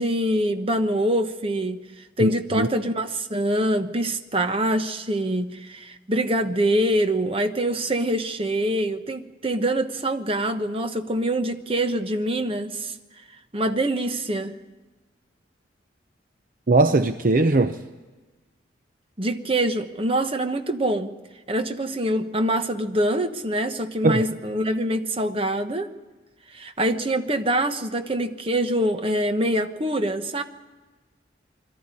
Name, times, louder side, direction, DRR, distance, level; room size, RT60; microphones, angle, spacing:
voice 1, 0.0-1.8 2.2-12.9 13.5-14.6 19.2-21.1 21.5-25.9 26.5-30.4, right 1 dB, 30° right, 8 dB, 1.1 m, -24 dB
voice 2, 2.2-2.7 16.7-17.7 24.0-24.2, right 2 dB, 50° right, 9 dB, 0.7 m, -19 dB
22.0 x 13.5 x 9.8 m, 1.2 s
head